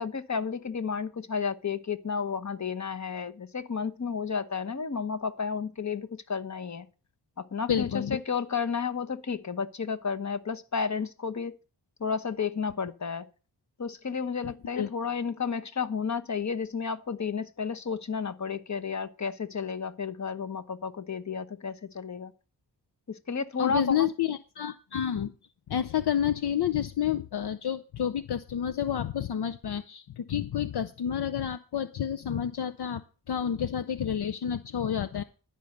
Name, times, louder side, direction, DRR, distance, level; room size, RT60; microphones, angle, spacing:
voice 1, 0.0-6.8 7.4-11.5 12.0-13.3 13.8-22.3 23.1-24.1, left 5 dB, 40° left, 1.1 m, -32 dB
voice 2, 7.7-8.2 14.4-14.9 23.6-25.3 25.7-33.0 33.3-35.2, left 9 dB, 70° left, 0.6 m, -29 dB
12.0 x 5.4 x 7.9 m
cardioid pair, 60°, 41 cm